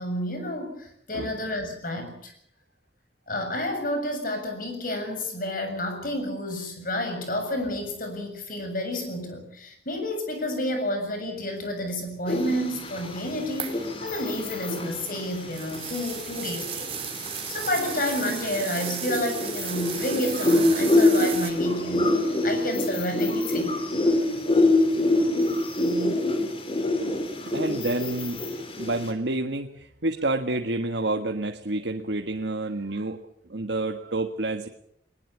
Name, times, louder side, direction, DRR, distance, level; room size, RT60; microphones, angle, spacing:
voice 1, 0.0-2.3 3.3-23.8 26.2-26.3, left 1 dB, 50° left, 6 dB, 7.2 m, -30 dB
sound 1, 12.3-29.1, left 2 dB, 30° left, 3.8 m, -26 dB
sound 2, 13.6-13.9 14.8-21.5, right 8 dB, 35° right, 3.6 m, -35 dB
voice 2, 25.8-26.2 27.5-28.4 28.8-33.2 33.5-34.7, right 2 dB, 85° right, 5 dB, 1.5 m, -29 dB
21.0 x 21.0 x 8.4 m, 0.70 s
head